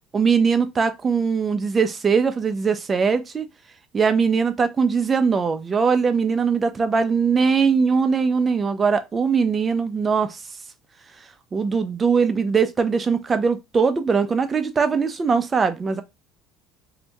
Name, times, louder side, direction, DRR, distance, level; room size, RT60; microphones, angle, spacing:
voice 1, 0.1-3.5 3.9-10.4 11.5-16.0, right 5 dB, 25° right, 0.5 m, -21 dB
2.8 x 2.6 x 3.4 m
cardioid pair, 135°, 0 cm